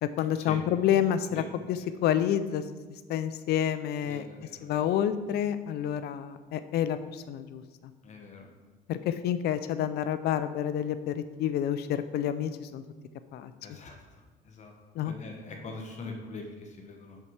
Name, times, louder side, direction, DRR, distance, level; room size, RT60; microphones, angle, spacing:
voice 1, 0.0-2.6 2.9-4.3 4.6-7.9 8.9-12.8 13.3-13.5 14.9-15.1, left 10 dB, 70° left, 12 dB, 0.5 m, -29 dB
voice 2, 4.0-4.9 8.0-8.5 13.6-14.0 14.4-14.7 15.1-17.2, left 3 dB, 45° left, 2 dB, 1.1 m, -42 dB
5.7 x 4.6 x 5.6 m, 1.3 s
cardioid pair, 110°, 17 cm